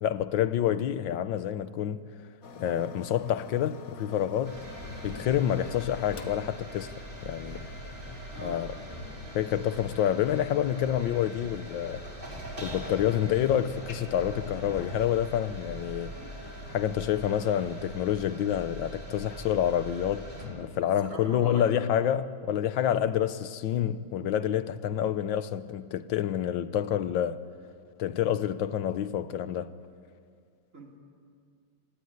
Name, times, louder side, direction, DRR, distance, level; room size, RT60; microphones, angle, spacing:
voice 1, 0.0-2.0 2.6-4.6 5.0-6.9 7.2-7.7 8.4-8.7 9.3-12.0 12.6-16.1 16.7-27.4 28.0-29.7, left 10 dB, 85° left, 1.6 m, -28 dB
sound 1, 2.4-17.9, left 5 dB, 50° left, 1.6 m, -48 dB
sound 2, 4.4-20.5, right 1 dB, 25° right, 5.6 m, -42 dB
voice 2, 8.3-8.6 20.8-21.9 30.7-31.0, right 2 dB, 40° right, 3.6 m, -43 dB
25.0 x 18.5 x 9.7 m
omnidirectional pair, 2.0 m